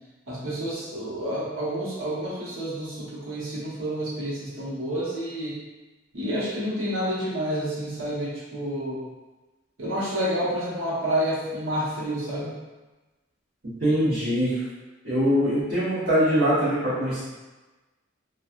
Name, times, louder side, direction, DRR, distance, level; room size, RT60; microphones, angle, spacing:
voice 1, 0.3-5.6 6.1-9.0 9.8-12.5, equal, 85° right, -8 dB, 1.2 m, -29 dB
voice 2, 13.6-14.6 15.0-17.2, equal, 60° right, -16 dB, 1.3 m, -23 dB
3.2 x 2.4 x 2.5 m, 1.2 s
head